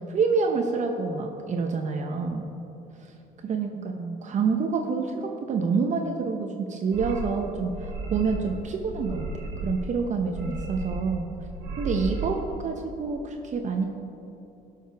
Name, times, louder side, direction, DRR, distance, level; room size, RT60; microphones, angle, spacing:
voice 1, 0.1-2.5 3.4-11.3 11.8-13.9, right 4 dB, 45° right, 3 dB, 0.8 m, -27 dB
sound 1, 6.9-7.3 7.7-8.6 8.8-9.9 10.2-11.2 11.4-12.3, right 3 dB, 90° right, 1.8 m, -34 dB
16.5 x 6.6 x 3.5 m, 2.9 s
cardioid pair, 110°, 17 cm